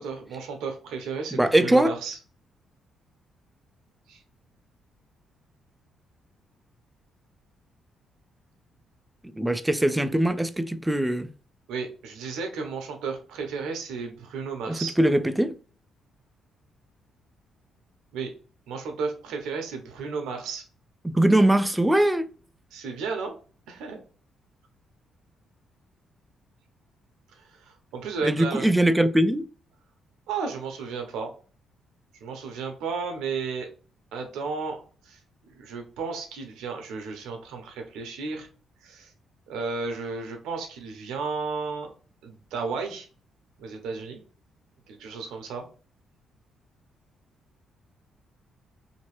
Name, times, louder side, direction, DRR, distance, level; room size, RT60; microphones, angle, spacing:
voice 1, 0.0-2.2 4.1-4.2 11.7-15.0 18.1-18.3 18.7-20.6 22.7-23.3 23.7-24.0 27.3-28.7 30.3-31.3 32.2-33.7 34.1-34.8 35.0-35.2 35.5-38.5 38.8-39.1 39.5-41.9 42.2-43.1 43.6-44.2 44.9-45.7, right 5 dB, 90° right, 0.8 m, -33 dB
voice 2, 1.3-1.9 9.4-11.3 14.7-15.6 21.0-22.3 28.2-29.5, right 1 dB, 10° right, 0.3 m, -21 dB
2.9 x 2.6 x 3.0 m
cardioid pair, 90°, 0 cm